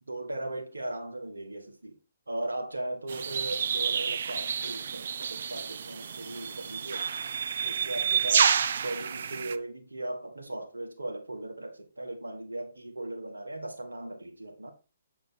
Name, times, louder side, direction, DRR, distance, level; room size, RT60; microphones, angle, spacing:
voice 1, 0.1-2.0 2.3-7.1 7.6-14.7, right 1 dB, 85° right, 1.6 m, -38 dB
sound 1, 3.1-9.6, right 7 dB, 60° right, 0.5 m, -29 dB
7.9 x 4.3 x 4.5 m
figure-of-eight pair, 135°, 0 cm